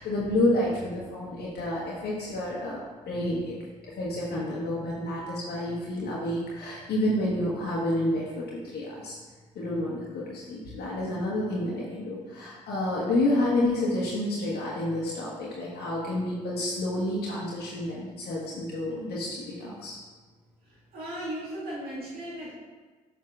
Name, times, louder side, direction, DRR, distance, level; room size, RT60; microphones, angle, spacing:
voice 1, 0.0-2.8 3.1-3.5 3.9-9.1 9.5-19.9, left 1 dB, 55° left, -6 dB, 1.3 m, -29 dB
voice 2, 20.6-22.5, right 1 dB, 55° right, -8 dB, 2.0 m, -37 dB
7.5 x 6.0 x 2.5 m, 1.4 s
hypercardioid pair, 50°, 19 cm